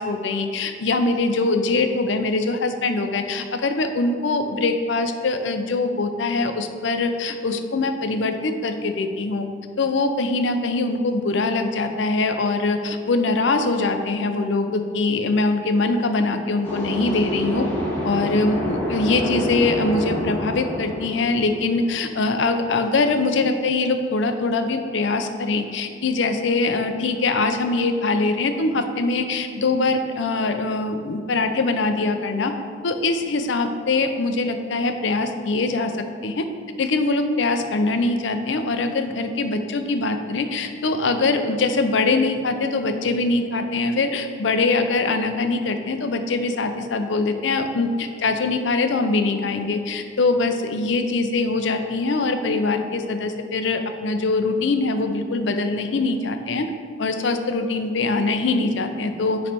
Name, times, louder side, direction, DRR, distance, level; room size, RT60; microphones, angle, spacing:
voice 1, 0.0-9.5 9.8-17.7 18.0-32.5 32.8-35.9 36.2-36.4 36.8-56.7 57.0-59.4, left 3 dB, 65° left, 7 dB, 0.5 m, -23 dB
sound 1, 16.6-22.3, left 1 dB, 10° left, 1.2 m, -27 dB
9.5 x 3.2 x 4.2 m, 2.2 s
head